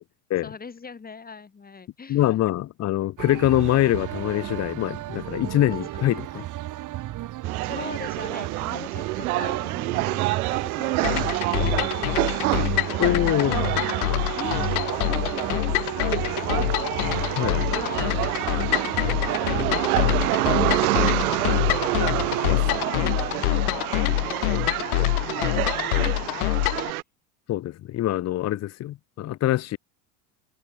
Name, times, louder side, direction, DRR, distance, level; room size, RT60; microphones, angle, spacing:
voice 1, 0.4-2.3 6.3-6.4 7.6-12.3 13.4-16.7 17.2-21.9 23.3-26.5 28.4-28.5, left 5 dB, 20° left, 7.4 m, -42 dB
voice 2, 2.1-6.4 13.0-13.6 17.4-17.6 22.4-22.8 27.5-29.8, left 14 dB, 35° left, 1.2 m, -24 dB
sound 1, 3.2-22.6, right 15 dB, 40° right, 2.1 m, -33 dB
sound 2, 7.4-27.0, right 19 dB, 70° right, 1.4 m, -28 dB
sound 3, 11.0-26.9, left 22 dB, 75° left, 0.6 m, -26 dB
hypercardioid pair, 95°, 45 cm